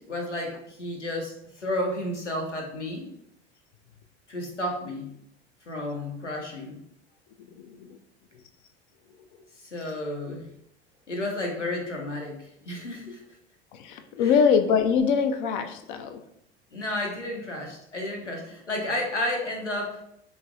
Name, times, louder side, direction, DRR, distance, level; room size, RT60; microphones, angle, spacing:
voice 1, 0.0-3.1 4.3-5.1 5.7-6.8 9.6-10.5 11.1-13.2 14.2-14.3 16.7-20.0, left 1 dB, 90° left, 1 dB, 0.7 m, -32 dB
voice 2, 7.4-8.0 13.7-16.2, left 6 dB, 50° left, 8 dB, 0.4 m, -24 dB
4.4 x 2.0 x 2.4 m, 0.74 s
figure-of-eight pair, 75°, 35 cm